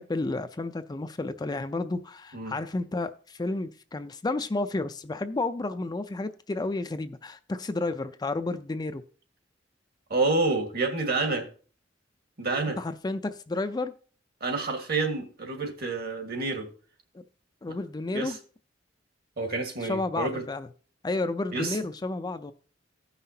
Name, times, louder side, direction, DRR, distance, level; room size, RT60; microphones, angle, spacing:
voice 1, 0.0-9.0 12.8-13.9 17.1-17.2 17.6-18.4 19.8-20.7 21.0-22.5, left 2 dB, 20° left, 0.4 m, -31 dB
voice 2, 10.1-11.5 12.4-12.8 14.4-16.7 18.1-18.3 19.4-20.4 21.5-21.8, right 3 dB, 55° right, 1.7 m, -28 dB
16.0 x 5.7 x 2.8 m
head